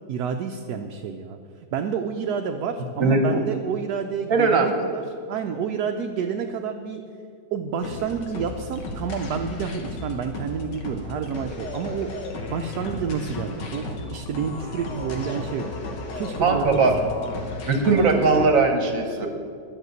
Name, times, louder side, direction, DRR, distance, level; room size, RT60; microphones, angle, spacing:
voice 1, 0.1-1.4 1.7-7.0 7.5-12.2 12.5-15.7 16.1-17.1, right 6 dB, 70° right, 4 dB, 1.1 m, -29 dB
voice 2, 3.0-3.4 4.3-4.8 16.4-16.9 17.6-19.3, right 3 dB, 55° right, 4 dB, 1.4 m, -19 dB
sound 1, 7.8-18.5, left 2 dB, 80° left, 1.9 m, -34 dB
11.0 x 6.8 x 7.9 m, 2.4 s
omnidirectional pair, 1.9 m